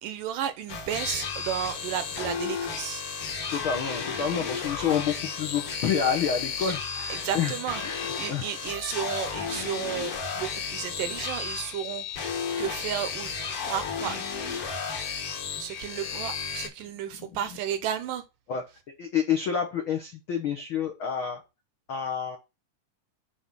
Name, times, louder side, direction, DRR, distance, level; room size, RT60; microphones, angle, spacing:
voice 1, 0.0-3.0 6.6-6.7 7.1-12.3 12.6-13.3 13.6-14.2 15.6-18.2, right 10 dB, 75° right, 2.2 m, -33 dB
sound 1, 0.7-16.7, left 6 dB, 50° left, 2.0 m, -33 dB
voice 2, 3.5-7.5 7.8-8.5 18.5-18.6 19.0-21.4 21.9-22.4, left 7 dB, 75° left, 1.2 m, -28 dB
8.0 x 5.0 x 5.7 m
omnidirectional pair, 4.3 m